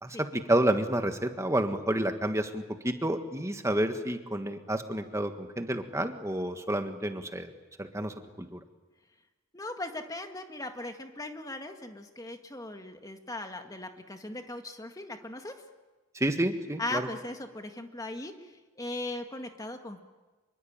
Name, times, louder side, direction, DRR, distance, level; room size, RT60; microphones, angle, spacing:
voice 1, 0.0-7.5 7.8-8.6 16.1-17.1, right 1 dB, 15° right, 7 dB, 1.6 m, -30 dB
voice 2, 9.5-15.5 16.8-18.3 18.8-20.0, left 2 dB, 15° left, 5 dB, 1.9 m, -38 dB
26.0 x 23.0 x 8.9 m, 1.2 s
head